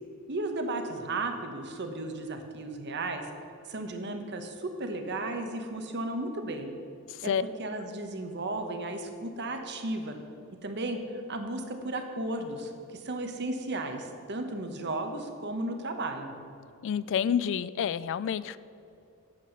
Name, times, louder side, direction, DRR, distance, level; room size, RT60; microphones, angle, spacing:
voice 1, 0.3-3.3 3.6-6.7 7.2-7.3 7.6-10.2 10.6-16.3, right 2 dB, 55° right, 5 dB, 1.1 m, -34 dB
voice 2, 16.8-18.6, left 8 dB, 60° left, 16 dB, 0.3 m, -28 dB
8.5 x 7.7 x 6.4 m, 2.6 s
head